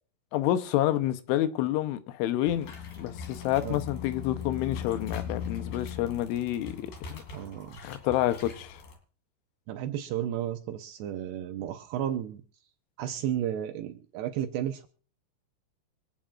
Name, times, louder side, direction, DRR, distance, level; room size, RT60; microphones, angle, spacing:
voice 1, 0.3-2.7 3.0-7.2 7.8-8.8, left 13 dB, 85° left, 3.2 m, -28 dB
sound 1, 2.4-9.0, left 7 dB, 55° left, 3.8 m, -39 dB
voice 2, 7.3-7.8 9.7-12.4 13.0-14.9, right 11 dB, 75° right, 2.6 m, -33 dB
26.0 x 8.9 x 2.4 m
omnidirectional pair, 5.5 m